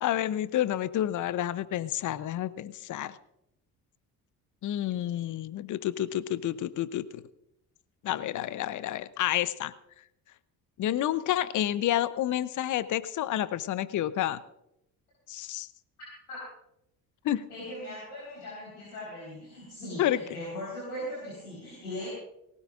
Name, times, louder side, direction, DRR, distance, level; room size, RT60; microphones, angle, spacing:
voice 1, 0.0-3.2 4.6-7.2 8.0-9.7 10.8-14.4 15.3-15.7 17.2-17.4 20.0-20.2, left 12 dB, 40° left, 17 dB, 0.8 m, -29 dB
voice 2, 17.5-22.1, left 1 dB, 85° left, -6 dB, 4.3 m, -39 dB
19.5 x 18.0 x 2.5 m, 0.81 s
figure-of-eight pair, 55°, 46 cm